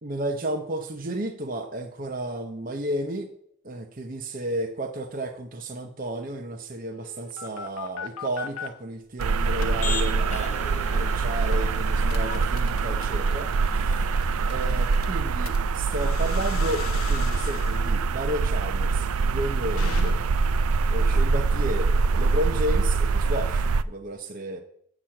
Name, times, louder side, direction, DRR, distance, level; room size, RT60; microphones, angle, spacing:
voice 1, 0.0-3.3 3.6-13.5 14.5-20.2 20.9-24.6, right 1 dB, 40° right, 4 dB, 0.8 m, -32 dB
sound 1, 6.9-8.7 9.2-9.8 10.3-10.5 10.9-11.2 11.5-20.6, left 5 dB, 80° left, 0.9 m, -38 dB
sound 2, 9.2-23.8, right 4 dB, 85° right, 0.4 m, -24 dB
Motor vehicle (road), 9.5-15.0, left 3 dB, 30° left, 1.0 m, -39 dB
8.6 x 6.2 x 7.5 m, 0.71 s
head